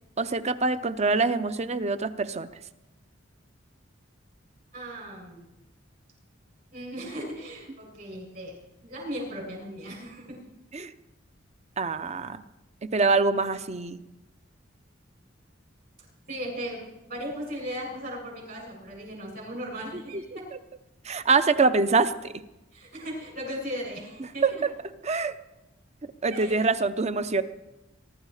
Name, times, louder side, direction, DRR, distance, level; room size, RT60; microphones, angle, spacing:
voice 1, 0.2-2.5 10.7-10.9 11.8-12.4 12.9-14.0 20.1-20.2 21.0-22.3 24.4-24.5 25.0-25.4 26.2-27.4, right 4 dB, 35° right, 13 dB, 0.7 m, -24 dB
voice 2, 4.7-5.4 6.7-10.4 16.3-20.4 22.7-24.6 26.3-26.7, equal, 50° right, -1 dB, 7.7 m, -37 dB
23.0 x 12.0 x 4.9 m, 0.95 s
head